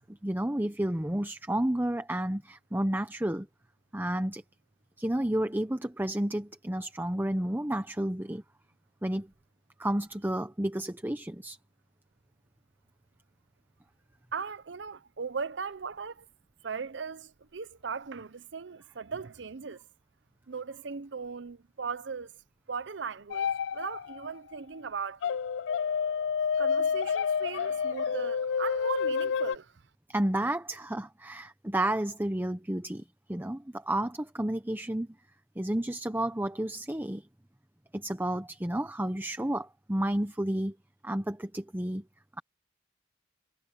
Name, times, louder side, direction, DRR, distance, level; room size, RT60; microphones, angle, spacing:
voice 1, 0.0-3.5 3.9-4.4 5.0-8.4 9.0-9.3 9.8-11.6 30.1-35.1 35.6-37.3 37.9-40.7 41.0-42.0, right 1 dB, 10° right, 0.9 m, -31 dB
voice 2, 14.3-16.3 16.6-19.8 20.5-22.3 22.7-25.4 26.6-29.7, right 5 dB, 75° right, 0.7 m, -38 dB
sound 1, 23.3-24.3 25.2-29.6, left 6 dB, 80° left, 0.4 m, -29 dB
head